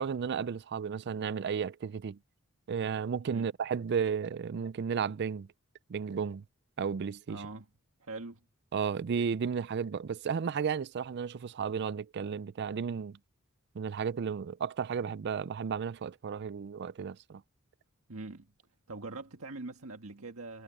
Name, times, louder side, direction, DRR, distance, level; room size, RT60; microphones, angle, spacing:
voice 1, 0.0-2.2 2.7-5.5 5.9-6.4 6.8-7.4 8.7-13.2 13.7-17.4, right 6 dB, 55° right, 0.4 m, -33 dB
voice 2, 7.3-7.7 8.0-8.4 18.1-18.5 18.9-20.6, right 3 dB, 85° right, 1.7 m, -42 dB
head